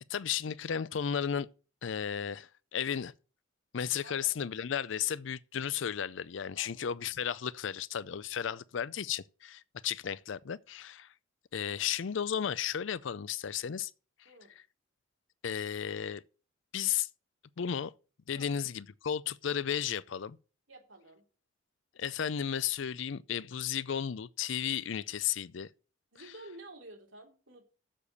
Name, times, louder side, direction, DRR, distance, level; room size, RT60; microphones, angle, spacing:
voice 1, 0.1-1.5 1.8-3.1 3.7-11.1 11.5-13.9 15.4-16.2 16.7-17.1 17.6-17.9 18.3-20.4 22.0-25.7, left 8 dB, 65° left, 0.4 m, -34 dB
voice 2, 6.6-7.1 8.5-8.8 11.7-11.9 14.2-14.5 18.3-18.5 20.7-21.2 26.1-27.8, right 2 dB, 70° right, 3.4 m, -52 dB
7.5 x 6.7 x 8.1 m
head